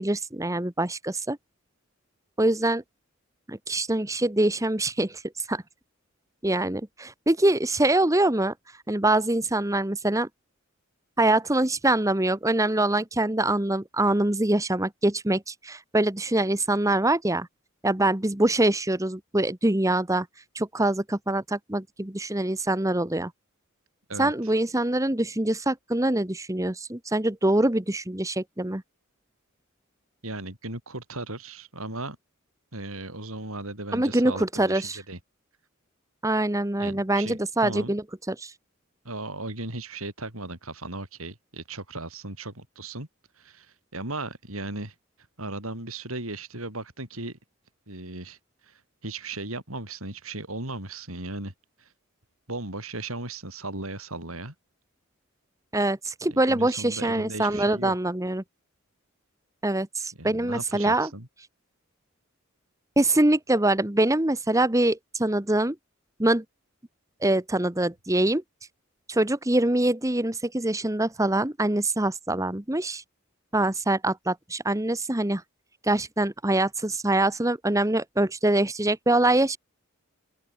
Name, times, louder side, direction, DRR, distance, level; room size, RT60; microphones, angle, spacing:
voice 1, 0.0-1.4 2.4-2.8 3.5-5.6 6.4-8.5 8.9-10.3 11.2-17.5 17.8-20.3 20.5-23.3 24.2-28.8 33.9-35.0 36.2-38.5 55.7-58.4 59.6-61.1 63.0-65.7 66.2-66.4 67.2-68.4 69.1-73.0 73.5-75.4 75.8-79.6, right 1 dB, 15° right, 1.3 m, -24 dB
voice 2, 24.1-24.5 30.2-32.2 32.7-35.2 36.8-37.9 39.0-43.1 43.4-44.9 45.4-47.4 47.9-48.4 48.6-51.5 51.8-51.9 52.5-54.5 56.3-57.9 60.2-61.3, right 2 dB, 85° right, 7.9 m, -36 dB
open air
head